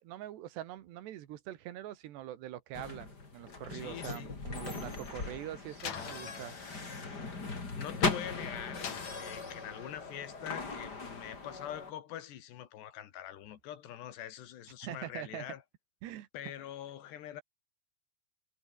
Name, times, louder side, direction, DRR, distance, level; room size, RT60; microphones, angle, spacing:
voice 1, 0.0-6.5 14.8-15.5 16.0-16.3, right 13 dB, 85° right, 3.7 m, -43 dB
sound 1, 2.7-11.9, left 3 dB, 25° left, 3.8 m, -39 dB
voice 2, 3.7-4.4 7.8-8.9 9.2-15.6 16.3-17.4, left 11 dB, 80° left, 4.1 m, -44 dB
Slam, 5.8-8.2 8.8-10.0, left 8 dB, 50° left, 3.1 m, -45 dB
omnidirectional pair, 4.8 m